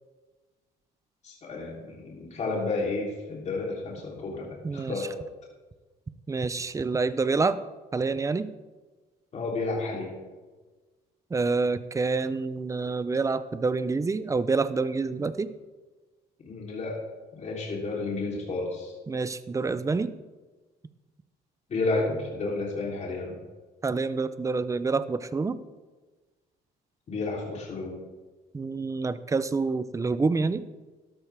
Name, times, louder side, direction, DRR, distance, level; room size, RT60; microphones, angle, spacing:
voice 1, 1.2-5.1 9.3-10.1 16.4-17.0 17.3-18.9 21.7-23.4 27.1-28.0, left 3 dB, 40° left, -2 dB, 3.3 m, -31 dB
voice 2, 4.6-5.1 6.3-7.6 7.9-8.5 11.3-15.5 19.1-20.1 23.8-25.6 28.5-30.6, right 4 dB, 20° right, 14 dB, 0.6 m, -27 dB
12.5 x 12.0 x 3.5 m, 1.3 s
cardioid pair, 110°, 17 cm